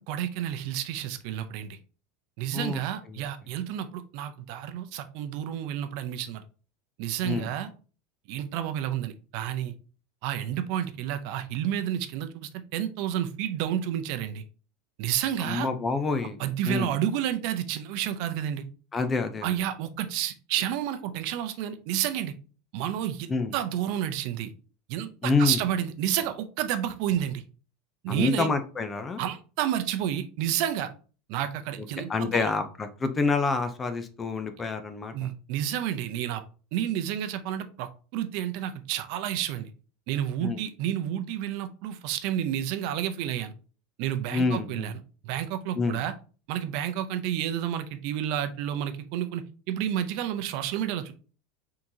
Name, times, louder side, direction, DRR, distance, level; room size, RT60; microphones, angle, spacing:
voice 1, 0.1-1.8 2.4-6.4 7.0-7.7 8.3-9.8 10.2-14.4 15.0-15.7 16.4-18.6 19.4-22.3 22.7-24.5 24.9-27.4 28.0-28.5 29.2-30.9 31.3-32.5 35.1-36.4 36.7-39.7 40.1-43.5 44.0-44.9 45.2-46.1 46.5-51.1, right 10 dB, 55° right, 10 dB, 0.5 m, -30 dB
voice 2, 15.4-16.4 16.6-16.9 18.9-19.5 23.3-23.5 25.2-25.6 28.1-29.2 32.1-35.3 40.4-40.6 44.3-44.9 45.8-46.0, left 4 dB, 15° left, 9 dB, 0.5 m, -27 dB
4.5 x 3.7 x 2.7 m, 0.36 s
supercardioid pair, 160°, 0 cm